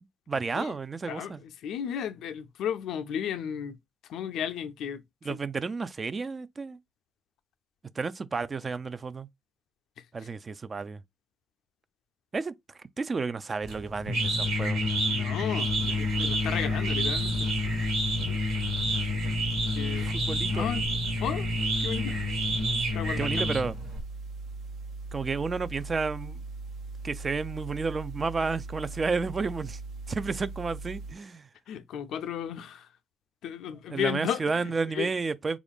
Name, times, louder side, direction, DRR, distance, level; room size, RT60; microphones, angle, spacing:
voice 1, 0.3-1.4 5.2-6.8 8.0-9.3 10.1-11.0 12.3-12.5 13.0-14.8 20.0-20.7 23.2-23.8 25.1-26.4 27.0-29.8 30.1-31.5 33.9-35.6, right 4 dB, 35° right, 0.3 m, -31 dB
voice 2, 1.1-3.8 4.1-5.0 5.3-5.4 15.1-17.5 19.7-20.1 20.5-20.8 21.2-21.5 21.8-22.2 22.9-23.5 31.7-32.9 33.4-34.4 34.9-35.1, left 9 dB, 75° left, 0.4 m, -34 dB
sound 1, 13.6-24.0, left 1 dB, 90° right, 1.7 m, -28 dB
sound 2, 15.7-31.1, right 3 dB, 70° right, 0.7 m, -40 dB
3.8 x 2.4 x 3.4 m
supercardioid pair, 65°, 0 cm